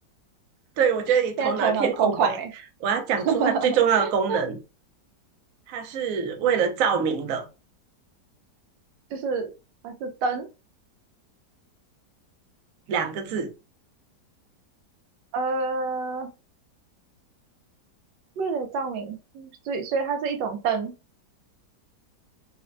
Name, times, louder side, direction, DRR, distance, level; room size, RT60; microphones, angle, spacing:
voice 1, 0.8-2.4 2.8-4.6 5.7-7.5 12.9-13.5, right 7 dB, 65° right, 0.9 m, -24 dB
voice 2, 1.4-2.5 3.2-4.4 9.1-9.5 9.8-10.5 15.3-16.3 18.4-20.9, right 5 dB, 85° right, 1.3 m, -27 dB
4.2 x 2.1 x 2.5 m
omnidirectional pair, 2.0 m